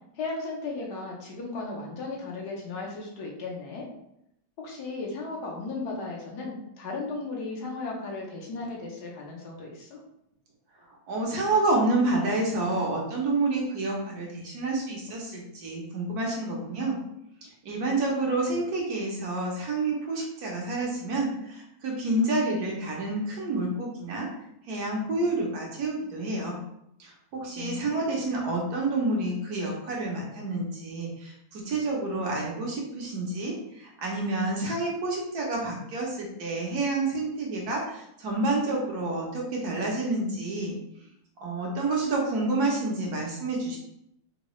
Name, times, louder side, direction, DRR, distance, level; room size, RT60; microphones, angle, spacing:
voice 1, 0.2-3.9 4.6-10.0 27.6-28.2, left 3 dB, 70° left, -2 dB, 1.3 m, -36 dB
voice 2, 11.1-17.0 17.4-24.3 24.7-26.6 27.0-40.8 41.4-43.8, right 2 dB, 65° right, -2 dB, 1.2 m, -29 dB
3.7 x 2.2 x 3.0 m, 0.79 s
omnidirectional pair, 1.9 m